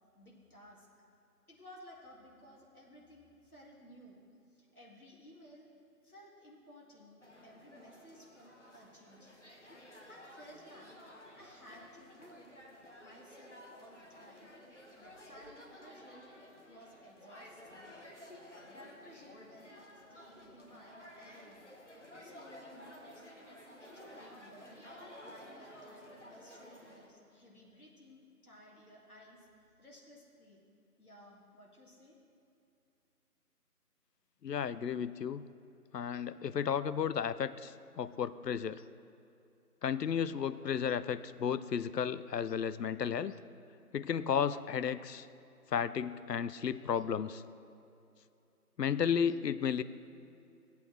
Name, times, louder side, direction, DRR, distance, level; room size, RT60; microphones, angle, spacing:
voice 1, 0.1-0.9 1.5-4.2 4.5-5.7 6.0-9.4 10.1-11.0 11.3-12.6 13.0-14.5 15.0-16.3 16.7-17.9 18.7-21.7 22.1-23.3 23.8-24.9 25.2-29.5 29.8-30.6 31.0-32.2, equal, 65° left, -3 dB, 2.3 m, -57 dB
sound 1, 7.2-27.1, left 1 dB, 45° left, 1.2 m, -54 dB
voice 2, 34.4-35.4 35.9-38.8 39.8-43.3 43.9-45.3 45.7-47.4 48.8-49.8, left 7 dB, 85° left, 15 dB, 0.6 m, -33 dB
16.0 x 8.3 x 3.3 m, 2.7 s
figure-of-eight pair, 180°, 48 cm